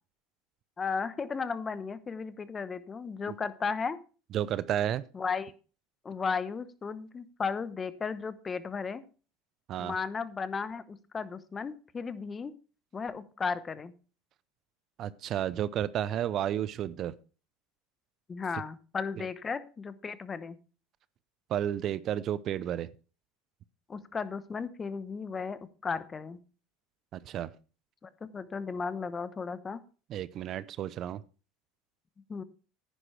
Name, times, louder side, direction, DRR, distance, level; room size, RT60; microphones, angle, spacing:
voice 1, 0.8-4.0 5.1-5.5 6.0-9.0 9.8-12.5 12.9-13.9 18.3-20.6 23.9-26.4 28.0-29.8 32.3-32.4, left 5 dB, 25° left, 14 dB, 0.9 m, -35 dB
voice 2, 4.3-5.0 9.7-9.9 15.0-17.1 19.2-19.3 21.5-22.9 27.1-27.5 30.1-31.2, right 11 dB, 50° right, 18 dB, 0.5 m, -32 dB
10.0 x 10.0 x 3.3 m, 0.36 s
hypercardioid pair, 95°, 0 cm